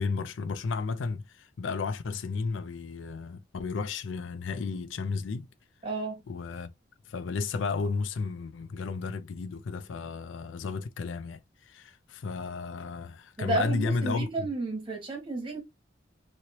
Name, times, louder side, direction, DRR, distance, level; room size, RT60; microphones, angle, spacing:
voice 1, 0.0-5.5 6.3-6.7 7.1-14.5, left 4 dB, 80° left, 0.4 m, -33 dB
voice 2, 5.8-6.2 13.4-15.6, right 2 dB, 30° right, 1.6 m, -31 dB
3.1 x 2.9 x 2.8 m
head